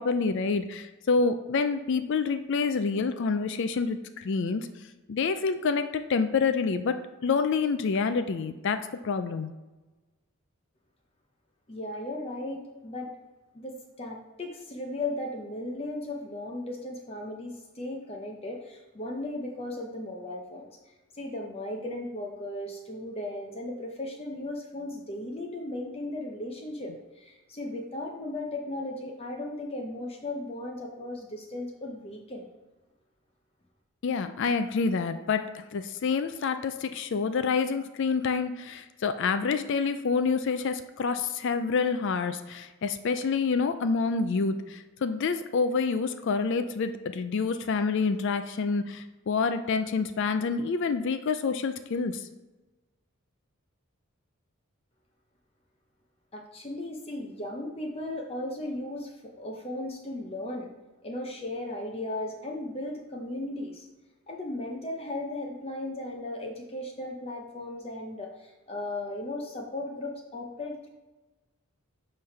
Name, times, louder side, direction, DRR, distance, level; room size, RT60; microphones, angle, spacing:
voice 1, 0.0-4.7 5.1-7.0 7.2-8.8 9.0-9.5 34.0-52.3, left 5 dB, 55° left, 9 dB, 0.4 m, -27 dB
voice 2, 11.7-13.1 13.5-32.5 56.3-60.7 61.0-63.9 64.3-70.9, left 1 dB, 25° left, 0 dB, 0.7 m, -36 dB
7.5 x 3.3 x 5.7 m, 1.2 s
head